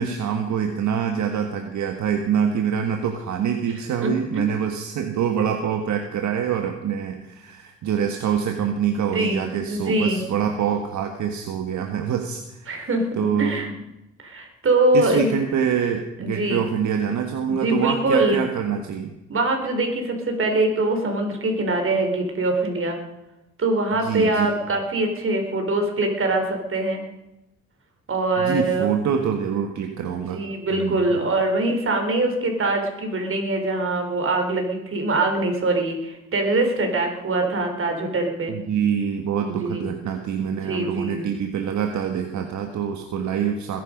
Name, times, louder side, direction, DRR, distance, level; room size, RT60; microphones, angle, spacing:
voice 1, 0.0-12.9 13.2-13.6 14.9-19.1 24.0-24.5 28.4-30.4 30.7-31.2 38.5-43.8, right 8 dB, 70° right, 4 dB, 1.7 m, -25 dB
voice 2, 4.0-4.4 9.1-10.2 12.7-13.1 13.4-13.7 14.2-15.4 16.2-16.6 17.5-18.4 19.3-23.0 23.6-27.0 28.1-28.9 30.3-38.5 39.6-39.9 40.6-41.2, right 2 dB, 45° right, 4 dB, 4.3 m, -23 dB
21.0 x 11.0 x 5.3 m, 0.94 s
cardioid pair, 90°, 30 cm